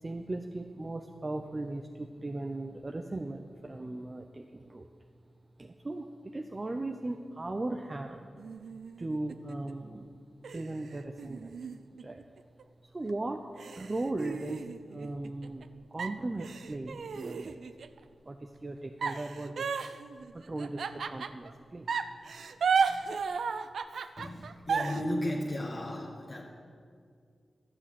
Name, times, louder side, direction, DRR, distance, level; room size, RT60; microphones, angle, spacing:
voice 1, 0.0-4.9 5.6-6.1 6.3-8.3 9.0-10.1 10.5-11.5 12.0-12.2 12.9-13.4 13.8-14.7 14.9-17.6 18.3-19.7 20.3-21.9, right 2 dB, 35° right, 4 dB, 0.6 m, -37 dB
sound 1, 8.4-9.7 10.4-12.6 13.1-13.2 13.6-15.6 16.0-18.0 19.0-21.5 21.9-25.0, right 5 dB, 80° right, 0.4 m, -34 dB
voice 2, 24.2-26.5, left 1 dB, 40° left, -2 dB, 1.3 m, -35 dB
12.5 x 6.2 x 7.5 m, 2.2 s
cardioid pair, 55°, 0 cm